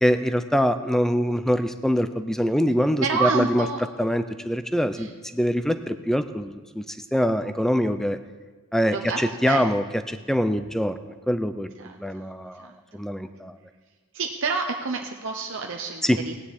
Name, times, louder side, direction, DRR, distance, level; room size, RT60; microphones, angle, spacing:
voice 1, 0.0-3.7 4.0-6.9 7.1-8.2 8.7-13.6 16.0-16.2, equal, ahead, 10 dB, 0.5 m, -24 dB
voice 2, 3.0-3.8 4.9-5.1 8.9-9.6 11.8-12.0 12.6-13.0 14.1-16.4, right 4 dB, 60° right, 2 dB, 0.8 m, -29 dB
17.5 x 9.7 x 4.3 m, 1.3 s
head